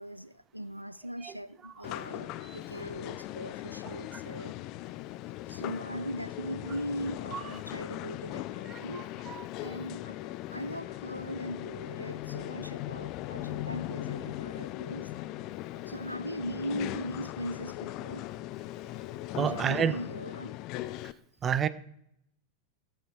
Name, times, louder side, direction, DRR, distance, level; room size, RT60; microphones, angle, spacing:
voice 1, 0.0-4.6 5.5-9.0 9.6-10.2 10.5-15.1 15.9-18.3 19.3-20.6, equal, 90° right, 0.3 m, -39 dB
sound 1, 1.8-21.1, left 15 dB, 40° left, 0.5 m, -39 dB
voice 2, 3.8-4.2 7.3-7.4 8.6-9.7 19.3-20.0 21.0-21.1 21.4-21.7, right 8 dB, 25° right, 0.6 m, -31 dB
13.5 x 8.6 x 4.7 m
figure-of-eight pair, 90°, 0 cm